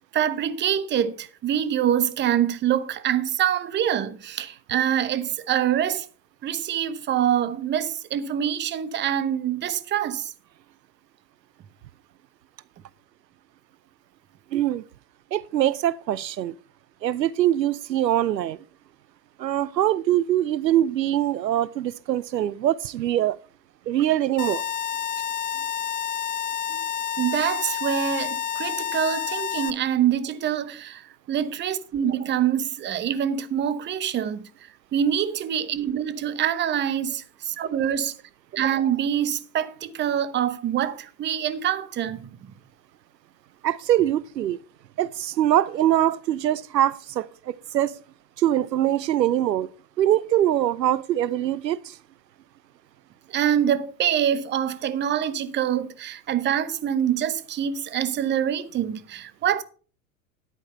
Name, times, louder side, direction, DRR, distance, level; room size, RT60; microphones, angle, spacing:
voice 1, 0.1-6.1 6.4-10.3 26.7-26.8 27.2-34.5 34.9-38.1 38.5-42.3 53.3-59.6, right 9 dB, 20° right, 0.8 m, -25 dB
voice 2, 14.5-14.8 15.3-16.5 17.0-18.6 19.4-23.4 23.9-24.6 43.6-44.6 45.0-48.0 48.4-49.7 50.0-52.0, right 12 dB, 80° right, 0.6 m, -23 dB
sound 1, 24.4-29.7, left 9 dB, 15° left, 0.5 m, -29 dB
10.0 x 8.9 x 4.3 m
figure-of-eight pair, 80°, 49 cm